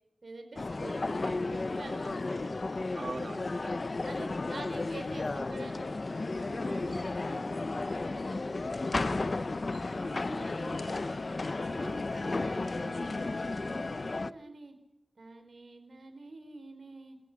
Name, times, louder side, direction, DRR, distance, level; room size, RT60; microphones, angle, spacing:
voice 1, 0.2-2.8 4.0-6.0 6.4-11.0 11.6-14.8 15.2-17.2, right 2 dB, 85° right, 7 dB, 4.2 m, -47 dB
sound 1, 0.6-14.3, left 3 dB, 60° left, 0.7 m, -33 dB
voice 2, 3.0-4.0 9.9-12.0, right 3 dB, 65° right, 7 dB, 1.9 m, -46 dB
28.5 x 16.0 x 7.3 m, 0.83 s
wide cardioid pair, 60°, 0 cm